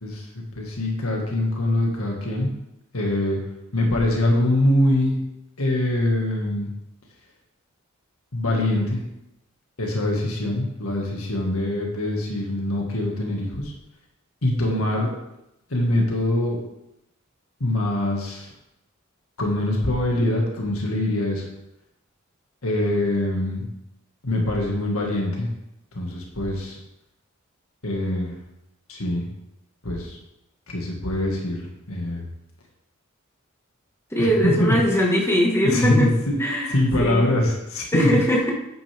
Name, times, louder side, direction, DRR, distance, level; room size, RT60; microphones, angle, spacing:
voice 1, 0.0-2.5 2.9-3.4 3.7-5.2 5.6-6.7 8.3-9.0 9.8-13.7 14.4-15.1 15.7-16.6 17.6-18.5 19.4-21.4 22.6-23.7 24.2-25.5 25.9-26.8 27.8-28.3 28.9-29.2 29.8-30.2 30.7-32.3 34.2-35.1 35.7-36.4 36.7-38.1, left 1 dB, 90° left, 0 dB, 2.1 m, -23 dB
voice 2, 34.1-36.1 36.4-37.3 37.9-38.5, equal, 10° left, -2 dB, 1.8 m, -21 dB
9.3 x 8.9 x 3.6 m, 0.87 s
head